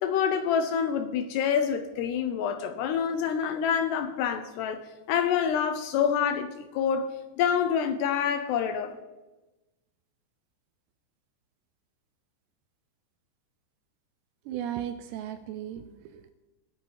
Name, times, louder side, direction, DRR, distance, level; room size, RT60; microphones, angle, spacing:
voice 1, 0.0-4.8 5.1-8.9, left 7 dB, 75° left, 9 dB, 2.6 m, -27 dB
voice 2, 14.5-16.3, right 10 dB, 80° right, 11 dB, 2.6 m, -36 dB
20.5 x 8.2 x 4.7 m, 1.1 s
omnidirectional pair, 5.4 m